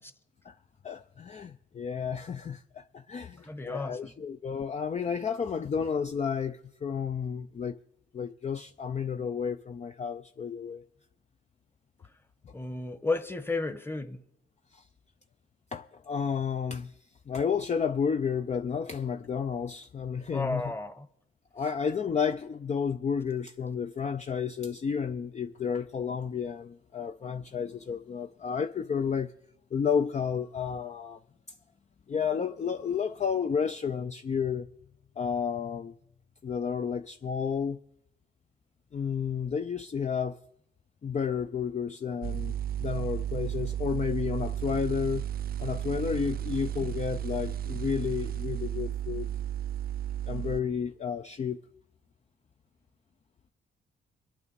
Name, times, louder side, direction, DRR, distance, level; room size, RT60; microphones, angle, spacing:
voice 1, 0.8-7.8 8.1-10.8 14.7-14.8 15.7-16.9 17.3-20.7 21.5-29.3 29.7-31.2 32.1-34.7 35.2-35.9 36.4-37.8 38.9-40.4 41.0-42.5 42.8-45.3 45.6-49.3 50.3-51.6, left 6 dB, 35° left, 0.5 m, -31 dB
voice 2, 3.4-4.1 12.5-14.2 20.3-21.1, left 3 dB, 10° left, 1.1 m, -33 dB
sound 1, 42.2-50.6, right 10 dB, 50° right, 0.4 m, -33 dB
23.0 x 9.0 x 4.1 m
cardioid pair, 75°, 20 cm